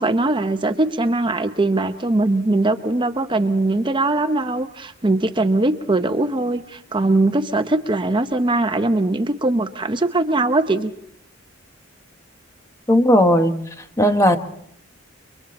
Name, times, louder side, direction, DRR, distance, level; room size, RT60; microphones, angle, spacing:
voice 1, 0.0-10.9, right 2 dB, 25° right, 8 dB, 0.8 m, -21 dB
voice 2, 12.9-13.5 14.0-14.4, equal, 15° left, 7 dB, 1.0 m, -15 dB
29.5 x 23.5 x 4.2 m, 0.71 s
head